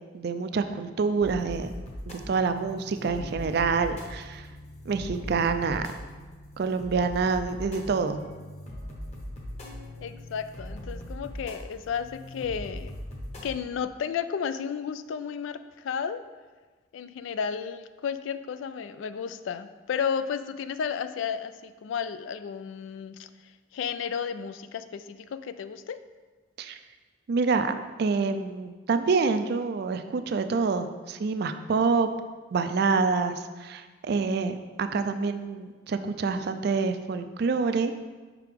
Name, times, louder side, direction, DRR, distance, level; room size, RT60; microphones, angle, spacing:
voice 1, 0.1-1.7 2.1-4.4 4.9-5.8 6.6-8.2 26.6-26.8 27.3-27.7 28.0-32.1 32.5-37.9, right 4 dB, 55° right, 9 dB, 0.4 m, -27 dB
sound 1, 1.2-13.6, equal, 35° left, 1.0 m, -40 dB
voice 2, 10.0-12.9 13.4-16.2 16.9-23.3 23.7-26.0, left 7 dB, 80° left, 11 dB, 0.3 m, -33 dB
5.7 x 4.8 x 3.5 m, 1.3 s
head